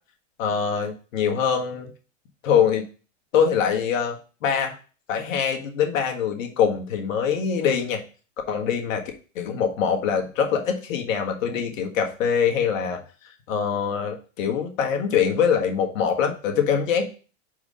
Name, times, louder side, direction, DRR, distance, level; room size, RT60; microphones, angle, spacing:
voice 1, 0.4-1.9 2.4-2.8 3.3-4.7 5.1-8.0 8.5-9.0 9.3-13.0 13.5-17.1, left 7 dB, 80° left, 3 dB, 1.6 m, -23 dB
5.5 x 4.8 x 5.0 m, 0.37 s
supercardioid pair, 130°, 38 cm